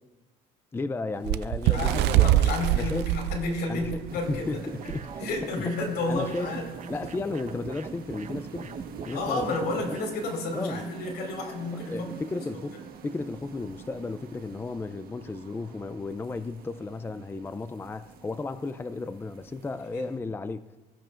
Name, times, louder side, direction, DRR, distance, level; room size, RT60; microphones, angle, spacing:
voice 1, 0.7-2.3 2.7-3.1 3.7-4.0 4.3-5.0 5.6-5.7 6.1-6.5 6.9-8.8 9.1-9.4 9.9-10.0 10.5-10.8 11.7-12.8 13.0-20.7, left 3 dB, 15° left, 0.4 m, -34 dB
Bird, 1.2-4.4 4.9-5.1 5.3-5.6 6.4-6.5, right 14 dB, 85° right, 0.4 m, -24 dB
voice 2, 1.6-4.6 5.2-6.7 9.1-12.4 19.9-20.0, left 2 dB, 80° left, 4.5 m, -31 dB
sound 1, 4.1-20.2, right 7 dB, 60° right, 1.4 m, -46 dB
sound 2, 4.8-10.1, right 5 dB, 45° right, 1.1 m, -41 dB
22.0 x 14.5 x 2.5 m
cardioid pair, 110°, 17 cm